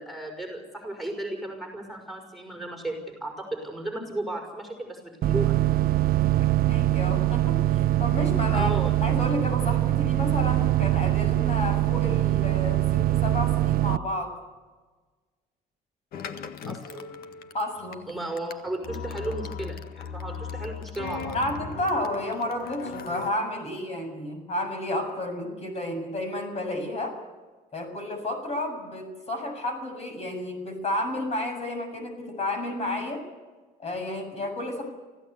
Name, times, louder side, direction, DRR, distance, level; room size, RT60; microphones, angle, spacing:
voice 1, 0.0-5.5 8.5-8.9 16.7-17.1 18.1-21.4, right 1 dB, ahead, 1 dB, 5.7 m, -34 dB
sound 1, 5.2-14.0, right 15 dB, 60° right, 0.7 m, -23 dB
voice 2, 6.3-8.7 9.0-14.3 17.5-18.1 21.3-27.1 27.7-33.2 33.8-34.8, left 1 dB, 40° left, 5 dB, 7.1 m, -31 dB
sound 2, 16.1-23.3, left 6 dB, 65° left, 1.7 m, -38 dB
25.0 x 16.0 x 8.2 m, 1.3 s
cardioid pair, 110°, 17 cm